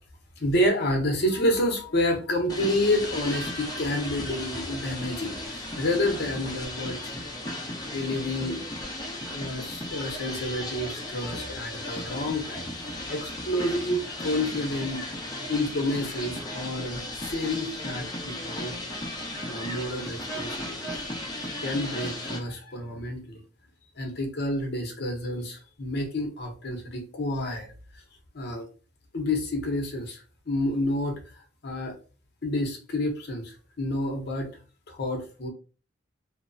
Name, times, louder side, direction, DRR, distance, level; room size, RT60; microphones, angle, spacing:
voice 1, 0.4-7.3 7.9-8.6 9.3-12.7 13.1-15.0 15.5-18.7 19.5-20.7 21.6-23.4 24.0-27.7 28.3-28.7 29.1-31.2 31.6-32.0 32.4-34.5 34.9-35.5, left 1 dB, 60° left, 2 dB, 0.7 m, -29 dB
sound 1, 2.5-22.4, left 1 dB, 20° left, 0.6 m, -35 dB
2.8 x 2.0 x 2.6 m, 0.37 s
head